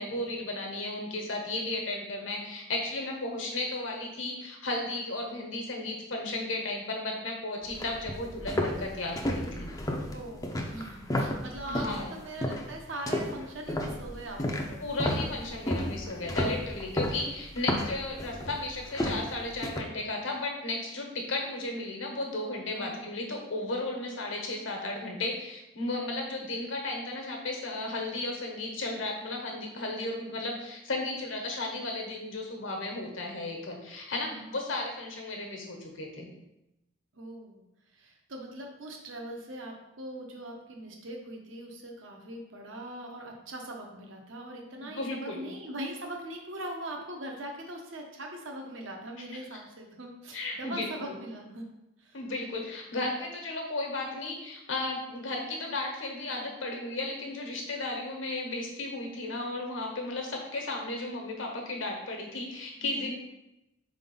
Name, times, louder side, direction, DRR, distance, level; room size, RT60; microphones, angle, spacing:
voice 1, 0.0-9.7 11.7-12.1 14.8-36.3 44.8-45.5 49.5-49.6 50.3-51.2 52.1-63.2, left 2 dB, 70° left, 1 dB, 1.2 m, -34 dB
sound 1, 7.6-12.0 12.4-12.7 13.1-19.8, left 1 dB, 20° left, 0.5 m, -32 dB
voice 2, 10.1-14.8 22.7-23.0 34.3-34.5 37.1-37.6 37.9-51.7 52.0-52.2 62.8-63.1, right 1 dB, 70° right, 1 dB, 1.1 m, -41 dB
4.7 x 3.7 x 5.4 m, 0.93 s
head